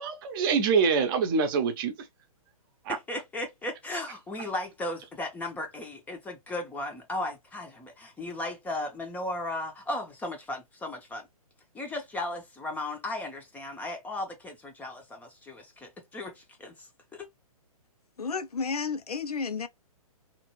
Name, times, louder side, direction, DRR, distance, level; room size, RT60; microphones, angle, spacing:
voice 1, 0.0-1.9 2.9-3.0, right 5 dB, 35° right, 0.8 m, -25 dB
voice 2, 2.9-11.3 11.7-17.3, left 2 dB, 10° left, 0.6 m, -36 dB
voice 3, 18.2-19.7, left 5 dB, 85° left, 0.6 m, -31 dB
3.0 x 2.5 x 3.0 m
figure-of-eight pair, 125°, 19 cm